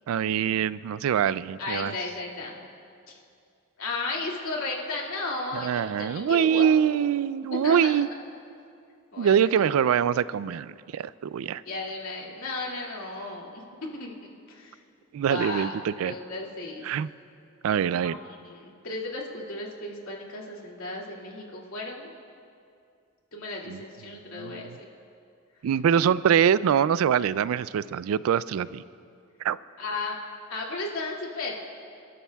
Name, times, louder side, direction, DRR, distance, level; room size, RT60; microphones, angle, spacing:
voice 1, 0.1-1.9 5.5-8.1 9.2-11.6 15.1-16.1 16.8-17.1 17.6-18.2 23.7-23.8 24.1-24.8 25.6-28.8 29.4-29.6, right 8 dB, 75° right, 19 dB, 0.3 m, -24 dB
voice 2, 1.6-2.6 3.1-3.2 3.8-6.7 7.6-8.0 9.1-9.7 11.7-13.6 13.9-14.8 15.2-15.7 16.0-16.9 18.0-22.1 23.3-24.9 29.8-30.2 30.5-31.5, left 2 dB, 75° left, -3 dB, 2.3 m, -34 dB
29.5 x 12.5 x 2.3 m, 2.4 s
head